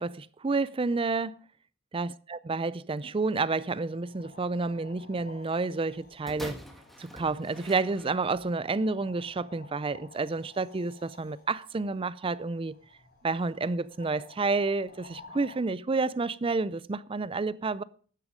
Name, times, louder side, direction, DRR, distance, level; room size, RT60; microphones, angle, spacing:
voice 1, 0.0-1.4 1.9-6.6 7.0-12.7 13.2-17.8, right 3 dB, 25° right, 0.4 m, -30 dB
sound 1, 3.4-15.6, left 3 dB, 50° left, 5.5 m, -54 dB
sound 2, 6.3-8.5 9.3-9.4, equal, ahead, 1.6 m, -45 dB
12.5 x 9.7 x 5.0 m
head